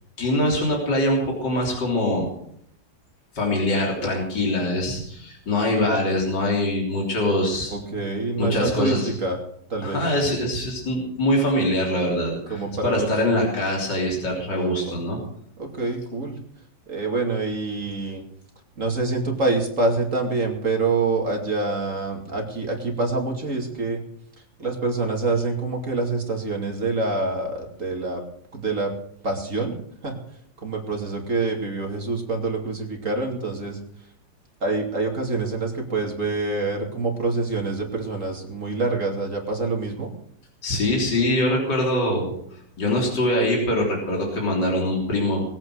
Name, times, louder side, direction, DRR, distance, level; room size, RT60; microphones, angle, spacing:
voice 1, 0.2-2.3 3.3-7.8 8.4-9.1 9.8-15.2 40.6-45.4, left 1 dB, 65° left, -2 dB, 4.1 m, -23 dB
voice 2, 7.7-9.4 9.7-10.0 12.5-13.1 14.5-15.0 15.6-16.4 16.9-18.2 18.8-24.0 24.6-28.2 28.5-28.9 29.2-29.7 30.0-30.1 30.6-33.8 34.6-40.1, right 3 dB, 45° right, 1 dB, 2.9 m, -26 dB
21.0 x 9.0 x 6.4 m, 0.68 s
omnidirectional pair, 2.0 m